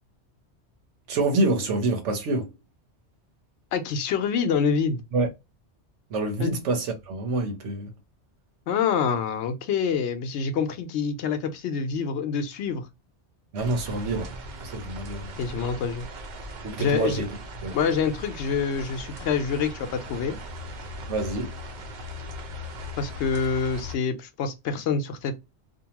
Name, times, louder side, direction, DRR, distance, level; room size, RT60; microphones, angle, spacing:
voice 1, 1.1-2.5 5.1-5.3 6.1-7.9 13.5-14.3 14.6-15.3 16.6-17.4 17.6-17.8 21.1-21.6, right 2 dB, 90° right, 1.1 m, -27 dB
voice 2, 3.7-5.0 6.4-6.6 8.7-12.9 15.4-16.1 16.8-17.2 17.7-20.4 23.0-25.4, left 6 dB, 75° left, 0.9 m, -26 dB
sound 1, 13.6-24.0, equal, 55° right, 0.6 m, -39 dB
2.7 x 2.2 x 2.8 m
omnidirectional pair, 1.2 m